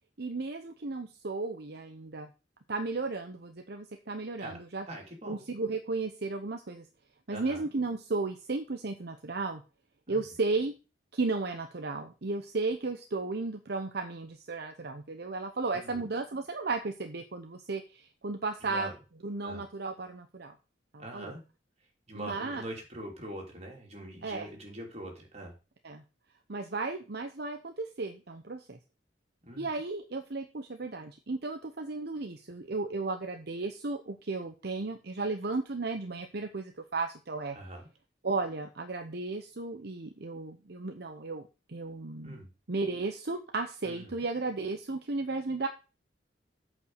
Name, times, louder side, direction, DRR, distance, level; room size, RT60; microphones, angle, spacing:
voice 1, 0.2-2.3 2.7-4.9 5.3-6.9 7.3-9.6 10.1-10.7 11.1-18.9 19.2-20.5 20.9-21.3 22.1-22.6 24.2-24.5 25.8-26.0 26.5-28.8 29.6-37.6 38.2-42.4 42.7-45.7, right 3 dB, 65° right, 6 dB, 0.9 m, -34 dB
voice 2, 4.9-5.4 7.3-7.7 10.1-10.2 15.7-16.1 18.6-18.9 19.4-19.6 21.0-21.4 22.1-25.5 29.4-29.7 37.5-37.9 42.2-42.5 43.8-44.2, right 1 dB, 40° right, 1 dB, 3.3 m, -43 dB
8.4 x 5.3 x 6.5 m, 0.31 s
head